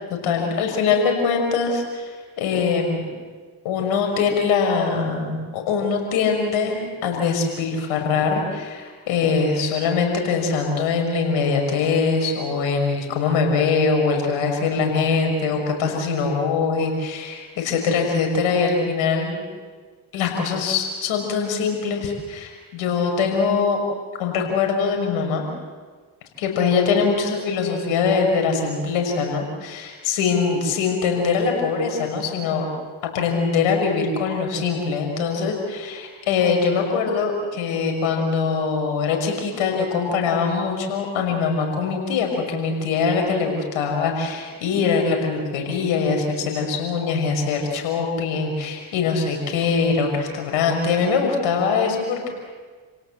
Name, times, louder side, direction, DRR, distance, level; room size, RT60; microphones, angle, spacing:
voice 1, 0.1-3.1 3.6-19.4 20.1-23.8 24.2-25.4 26.4-32.7 33.1-52.3, left 5 dB, 75° left, 2 dB, 6.1 m, -22 dB
29.0 x 17.5 x 7.7 m, 1.5 s
hypercardioid pair, 55°, 49 cm